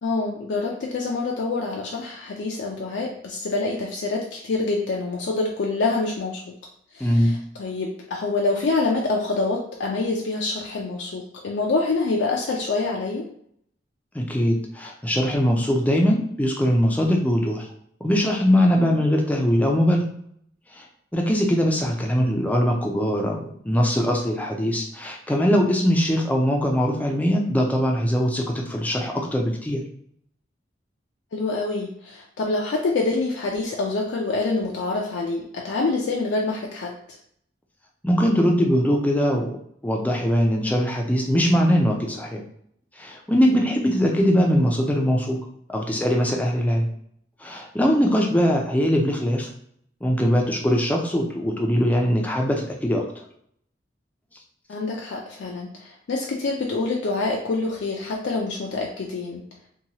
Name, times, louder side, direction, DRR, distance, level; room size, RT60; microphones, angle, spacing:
voice 1, 0.0-6.4 6.9-13.3 18.7-19.0 31.3-36.9 43.5-43.7 54.7-59.4, left 3 dB, 75° left, -1 dB, 0.4 m, -26 dB
voice 2, 7.0-7.3 14.1-17.7 18.0-20.1 20.7-20.8 21.1-29.8 38.0-39.5 39.8-42.4 43.0-45.4 45.7-46.9 47.4-49.5 50.0-53.0, equal, 10° left, 0 dB, 0.4 m, -21 dB
2.7 x 2.2 x 2.8 m, 0.67 s
head